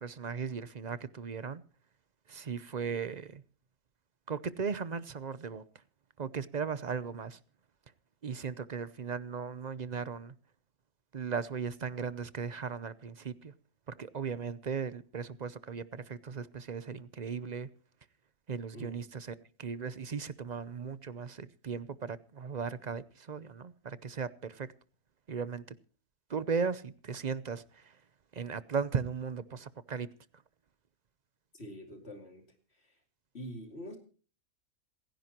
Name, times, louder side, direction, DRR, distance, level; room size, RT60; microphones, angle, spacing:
voice 1, 0.0-1.6 2.3-3.4 4.3-5.6 6.2-7.4 8.2-10.3 11.1-13.5 13.9-17.7 18.5-24.7 25.3-25.8 26.3-28.0 28.3-30.1, right 6 dB, 45° right, 0.6 m, -37 dB
voice 2, 31.5-33.0 33.3-34.0, equal, 50° left, 2.9 m, -45 dB
27.5 x 10.5 x 2.9 m
omnidirectional pair, 1.4 m